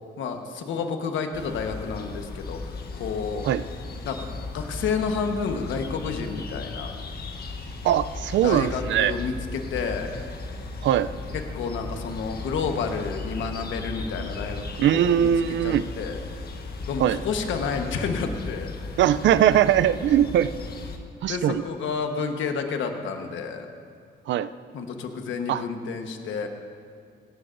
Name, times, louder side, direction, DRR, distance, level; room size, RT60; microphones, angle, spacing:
voice 1, 0.2-3.5 4.0-4.3 4.5-6.9 8.4-10.2 11.3-15.3 15.6-16.2 16.9-19.0 21.3-23.7 24.7-26.5, left 5 dB, 75° left, 5 dB, 1.3 m, -30 dB
sound 1, 1.3-21.0, left 3 dB, 50° left, 1.4 m, -36 dB
voice 2, 7.8-9.1 10.8-11.1 14.8-15.8 17.0-17.2 19.0-20.5 21.2-21.6 24.3-24.5 25.5-25.6, right 10 dB, 70° right, 14 dB, 0.5 m, -21 dB
17.5 x 13.5 x 2.6 m, 2.2 s
cardioid pair, 90°, 20 cm